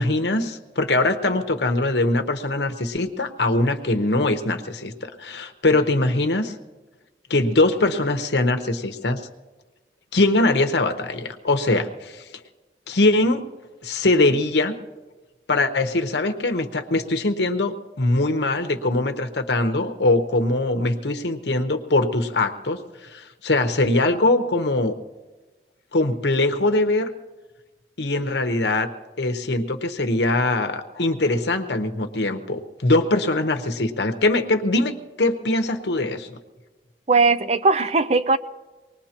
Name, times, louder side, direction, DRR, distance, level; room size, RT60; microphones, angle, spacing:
voice 1, 0.0-6.5 7.3-9.2 10.1-12.2 12.9-13.5 13.8-14.7 15.5-24.9 25.9-27.1 28.0-28.9 29.2-36.4, left 2 dB, 75° left, 6 dB, 1.0 m, -22 dB
voice 2, 37.1-38.4, right 3 dB, 35° right, 12 dB, 0.5 m, -18 dB
25.0 x 19.5 x 2.9 m, 1.2 s
head